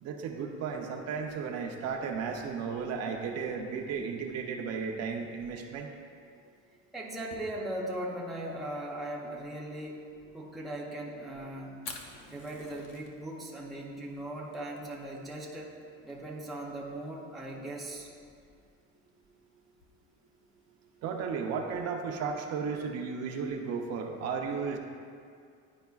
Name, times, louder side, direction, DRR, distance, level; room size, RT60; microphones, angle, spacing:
voice 1, 0.0-5.9 21.0-24.8, right 5 dB, 50° right, 2 dB, 0.6 m, -34 dB
voice 2, 6.9-10.1 10.3-11.8 12.3-15.7 16.0-18.1, right 1 dB, ahead, -5 dB, 0.5 m, -39 dB
Fire, 11.8-21.5, left 4 dB, 50° left, 0.8 m, -52 dB
10.5 x 4.7 x 2.3 m, 2.3 s
cardioid pair, 160°, 32 cm